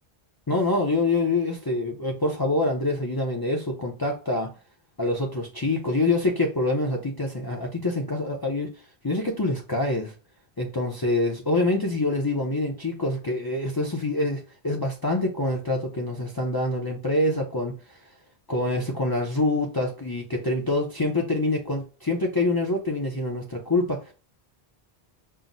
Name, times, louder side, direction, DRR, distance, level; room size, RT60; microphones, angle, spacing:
voice 1, 0.5-4.5 5.0-8.7 9.0-10.1 10.6-18.0 18.5-24.1, left 2 dB, 30° left, 0.4 m, -26 dB
5.6 x 2.0 x 2.5 m
omnidirectional pair, 1.1 m